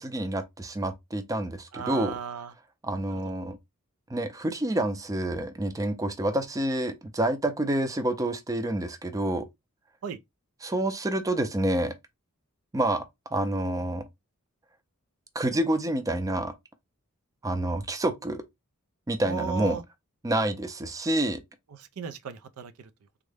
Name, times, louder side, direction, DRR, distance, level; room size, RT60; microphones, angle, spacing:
voice 1, 0.0-2.1 2.8-3.6 4.1-9.5 10.6-11.9 12.7-13.0 13.3-14.0 15.4-16.5 17.4-18.4 19.1-19.8 20.2-21.4, right 1 dB, 15° right, 0.4 m, -28 dB
voice 2, 1.7-2.5 3.1-3.3 10.0-10.2 19.2-19.8 21.7-22.9, right 6 dB, 90° right, 0.4 m, -36 dB
3.6 x 2.1 x 3.2 m
head